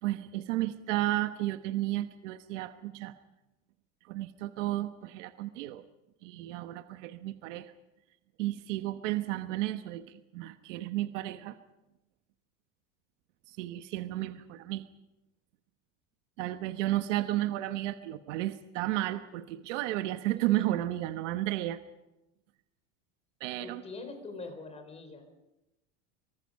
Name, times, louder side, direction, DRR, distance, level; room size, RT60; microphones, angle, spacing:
voice 1, 0.0-3.1 4.1-5.8 6.2-7.7 8.4-11.5 13.5-14.8 16.4-21.8 23.4-23.8, right 15 dB, 90° right, 9 dB, 1.2 m, -33 dB
voice 2, 23.6-25.3, left 3 dB, 15° left, 6 dB, 4.3 m, -43 dB
24.5 x 24.0 x 5.5 m, 0.95 s
cardioid pair, 165°, 36 cm